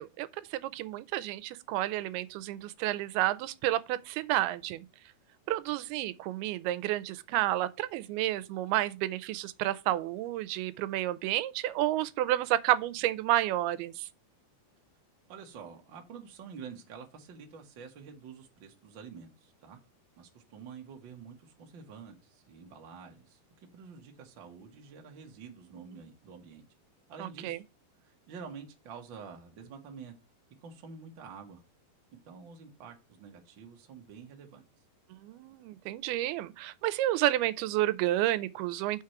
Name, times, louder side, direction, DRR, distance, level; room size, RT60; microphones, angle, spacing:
voice 1, 0.0-4.9 5.5-14.1 27.2-27.6 35.2-39.0, right 15 dB, 85° right, 2.6 m, -30 dB
voice 2, 15.3-19.8 20.2-23.4 23.7-26.6 27.1-27.6 28.0-30.1 30.6-31.6 32.2-34.6, right 6 dB, 55° right, 1.4 m, -48 dB
6.2 x 4.8 x 5.8 m
omnidirectional pair, 4.4 m